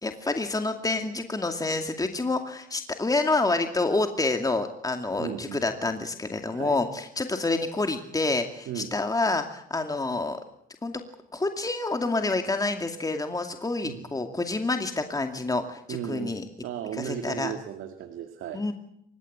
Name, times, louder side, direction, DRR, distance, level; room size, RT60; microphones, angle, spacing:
voice 1, 0.0-10.4 10.8-11.0 11.3-16.4 17.0-17.5 18.5-18.7, left 3 dB, 20° left, 5 dB, 2.4 m, -28 dB
voice 2, 5.2-5.6 6.5-6.8 8.7-8.9 13.8-14.1 15.9-18.6, right 9 dB, 90° right, 6 dB, 2.0 m, -35 dB
27.5 x 16.5 x 8.8 m, 0.72 s
cardioid pair, 90°, 20 cm